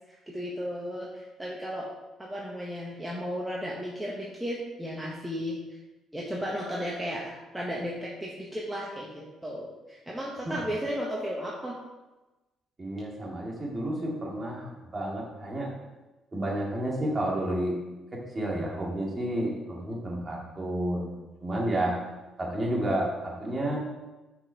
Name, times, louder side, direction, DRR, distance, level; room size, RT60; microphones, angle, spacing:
voice 1, 0.1-1.9 2.2-5.8 6.1-11.8, equal, 10° right, -4 dB, 1.1 m, -34 dB
voice 2, 12.8-15.7 16.3-17.8 18.1-21.1 21.4-22.0 22.4-23.8, right 1 dB, 30° right, -2 dB, 2.0 m, -31 dB
5.9 x 4.3 x 4.6 m, 1.1 s
supercardioid pair, 75°, 0 cm